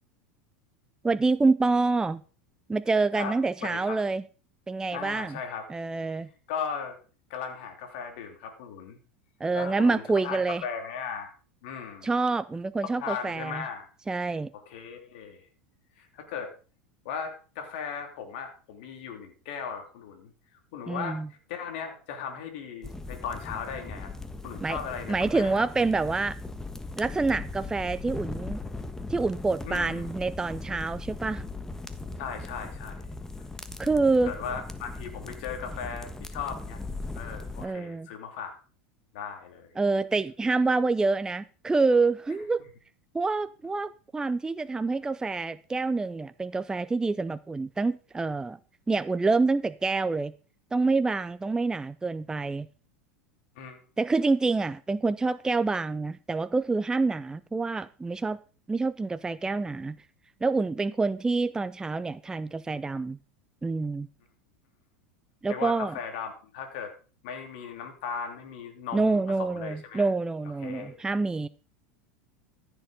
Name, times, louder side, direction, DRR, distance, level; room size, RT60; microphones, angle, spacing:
voice 1, 1.0-2.2 2.7-4.2 4.7-5.4 5.7-6.3 9.4-10.6 12.0-13.6 14.1-14.5 20.9-21.3 24.6-24.8 25.1-26.4 27.0-28.6 29.1-31.4 33.8-34.3 37.6-38.1 39.8-42.6 43.1-48.6 48.9-50.3 50.7-52.7 54.0-58.4 58.7-60.0 60.4-63.2 63.6-64.1 65.4-66.0 68.9-71.5, right 3 dB, 10° right, 0.5 m, -27 dB
voice 2, 3.1-4.0 4.9-5.7 6.5-7.0 7.3-9.0 9.5-11.3 11.6-12.1 13.0-13.9 14.7-15.5 16.0-16.5 17.0-20.3 20.7-21.2 21.5-24.1 24.4-25.7 29.6-30.1 32.2-33.1 34.2-36.8 37.1-38.6 39.1-39.7 53.5-53.8 65.5-66.9 67.2-70.1 70.6-71.0, left 7 dB, 65° left, 2.9 m, -37 dB
sound 1, 22.8-37.7, left 3 dB, 10° left, 1.3 m, -39 dB
14.5 x 6.9 x 5.1 m
hypercardioid pair, 90°, 6 cm